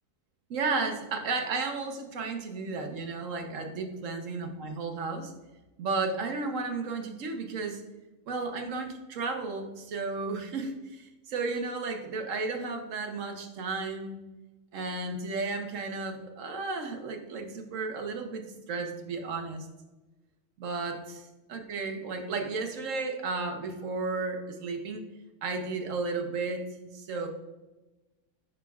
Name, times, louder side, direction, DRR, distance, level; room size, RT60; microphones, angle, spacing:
voice 1, 0.5-5.3 5.8-7.8 8.3-14.2 14.7-19.7 20.6-21.2 21.5-25.0 25.4-27.3, right 3 dB, 60° right, 4 dB, 1.2 m, -33 dB
11.0 x 4.5 x 2.4 m, 1.1 s
omnidirectional pair, 1.7 m